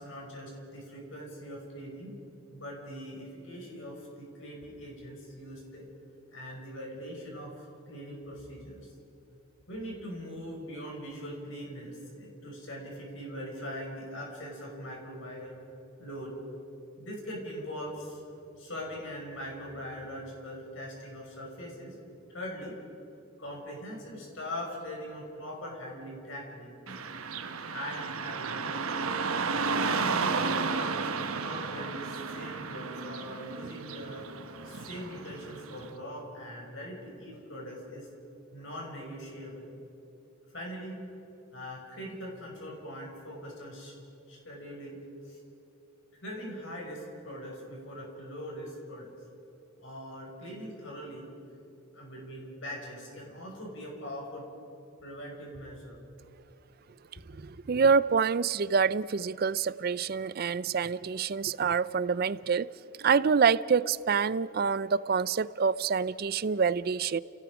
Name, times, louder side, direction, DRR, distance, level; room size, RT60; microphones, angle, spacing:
voice 1, 0.0-2.1 2.5-5.8 6.3-8.9 9.7-15.6 16.0-16.3 17.0-22.0 22.3-22.7 23.4-26.7 27.6-28.7 29.8-34.2 34.6-38.1 38.5-39.7 40.5-41.0 41.5-44.0 44.3-45.0 45.2-45.4 46.2-49.1 49.8-51.3 51.9-54.4 55.0-56.0, equal, 60° left, -1 dB, 5.7 m, -41 dB
Car passing by / Traffic noise roadway noise, 26.9-35.9, right 4 dB, 85° right, 1.1 m, -33 dB
voice 2, 57.4-62.7 63.0-67.2, right 5 dB, 45° right, 18 dB, 0.4 m, -26 dB
30.0 x 18.0 x 4.9 m, 3.0 s
head